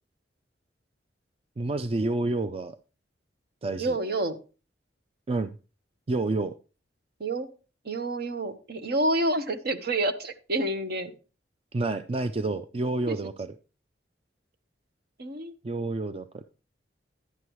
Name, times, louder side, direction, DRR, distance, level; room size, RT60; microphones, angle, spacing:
voice 1, 1.6-2.8 3.6-3.9 5.3-5.6 6.1-6.5 11.7-13.5 15.6-16.4, right 2 dB, 30° right, 10 dB, 0.4 m, -29 dB
voice 2, 3.8-4.4 7.2-7.5 7.8-11.1 13.1-13.2 15.2-15.5, right 1 dB, 60° right, 9 dB, 1.0 m, -28 dB
11.5 x 9.6 x 3.1 m, 0.34 s
head